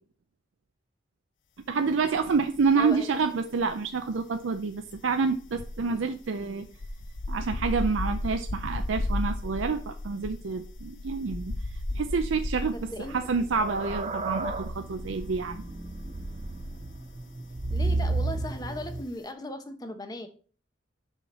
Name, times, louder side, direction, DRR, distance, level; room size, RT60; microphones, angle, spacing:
voice 1, 1.7-6.7 7.3-11.5 11.9-15.7, right 4 dB, 85° right, 6 dB, 0.5 m, -28 dB
sound 1, 2.1-3.0 3.2-16.8 17.0-17.3, left 1 dB, 70° left, 0.7 m, -35 dB
voice 2, 2.8-3.1 12.7-13.3 17.7-20.3, left 1 dB, 20° left, 8 dB, 0.8 m, -37 dB
sound 2, 12.8-19.0, right 2 dB, 35° right, 0.7 m, -32 dB
7.0 x 5.7 x 4.2 m, 0.42 s
head